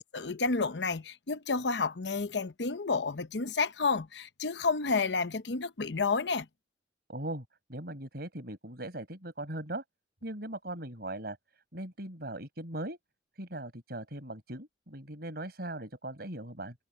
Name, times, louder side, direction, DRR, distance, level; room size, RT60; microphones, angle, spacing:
voice 1, 0.0-6.5, left 4 dB, 75° left, 0.9 m, -30 dB
voice 2, 7.1-7.4 7.7-9.8 10.2-11.4 11.7-13.0 13.3-16.8, right 1 dB, 60° right, 5.8 m, -39 dB
head